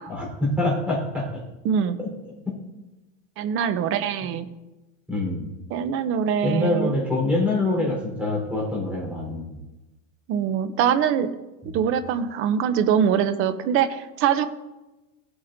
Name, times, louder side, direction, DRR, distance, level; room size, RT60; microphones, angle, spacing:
voice 1, 0.1-1.4 2.0-2.1 5.1-5.5 6.4-9.6, left 2 dB, 5° right, -4 dB, 3.9 m, -25 dB
voice 2, 1.6-2.0 3.4-4.5 5.7-6.9 10.3-11.3 11.7-14.5, right 8 dB, 30° right, 11 dB, 0.6 m, -23 dB
16.5 x 8.7 x 2.6 m, 1.0 s
supercardioid pair, 155°, 42 cm